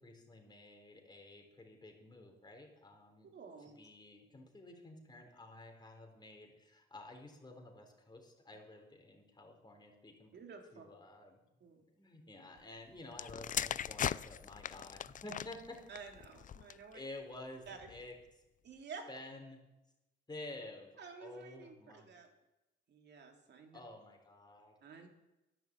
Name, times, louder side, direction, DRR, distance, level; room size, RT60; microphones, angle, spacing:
voice 1, 0.0-3.3 3.6-10.4 10.7-11.4 11.9-15.8 16.9-18.1 19.1-19.6 20.3-20.9 21.2-22.1 23.7-24.8, left 2 dB, 20° left, 3 dB, 3.7 m, -51 dB
voice 2, 3.3-3.8 10.3-10.8 11.6-11.8 15.9-17.0 17.7-17.9 18.6-19.1 21.0-22.3 22.9-23.8 24.8-25.1, right 5 dB, 60° right, 3 dB, 2.7 m, -51 dB
sound 1, 13.1-17.0 17.7-18.0, left 9 dB, 40° left, 0.4 m, -40 dB
11.0 x 11.0 x 7.4 m, 0.96 s
cardioid pair, 90°, 20 cm